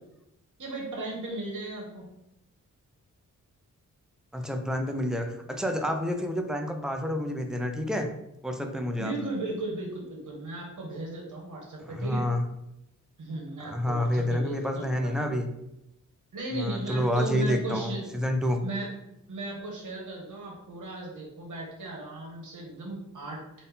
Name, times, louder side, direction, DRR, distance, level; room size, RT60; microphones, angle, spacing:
voice 1, 0.6-2.0 9.0-12.2 13.2-15.1 16.3-18.0 18.6-18.9 19.3-23.4, right 2 dB, 70° right, -1 dB, 1.3 m, -36 dB
voice 2, 4.3-8.1 8.4-9.1 11.9-12.4 13.6-15.5 16.5-18.6, left 1 dB, ahead, 4 dB, 0.4 m, -29 dB
4.3 x 2.7 x 3.5 m, 0.85 s
wide cardioid pair, 130°, 32 cm